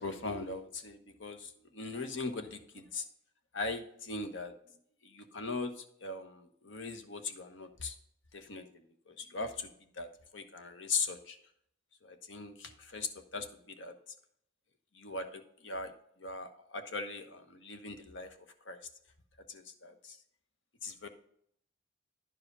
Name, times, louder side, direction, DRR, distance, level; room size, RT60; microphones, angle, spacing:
voice 1, 0.0-3.0 3.5-4.5 5.0-7.9 8.3-8.6 9.1-9.7 10.0-11.4 12.0-13.5 13.8-13.9 14.9-15.9 16.2-18.3 18.7-18.8 19.5-20.2 20.8-21.1, left 3 dB, 80° left, 8 dB, 1.2 m, -40 dB
10.5 x 4.9 x 5.4 m, 0.68 s
head